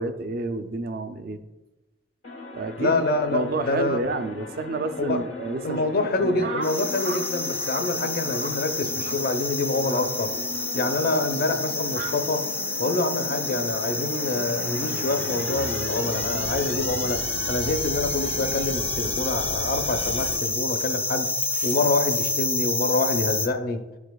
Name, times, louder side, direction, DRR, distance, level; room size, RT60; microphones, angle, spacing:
voice 1, 0.0-1.4 2.5-3.0 3.3-5.8 6.2-6.6, right 2 dB, 55° right, 9 dB, 0.5 m, -29 dB
sound 1, 2.2-20.4, left 2 dB, 85° left, 1.0 m, -38 dB
voice 2, 2.8-4.0 5.0-5.2 5.6-10.3 10.7-12.4 12.8-21.3 21.6-23.8, left 2 dB, 55° left, 7 dB, 0.6 m, -26 dB
sound 2, 6.4-7.3 7.5-7.9 8.3-8.6 9.0-9.2 9.8-10.1 10.8-11.0 11.9-12.1, right 3 dB, 75° right, 1.1 m, -35 dB
sound 3, 6.6-23.5, left 2 dB, 10° left, 0.4 m, -29 dB
11.0 x 4.8 x 2.3 m, 1.1 s
head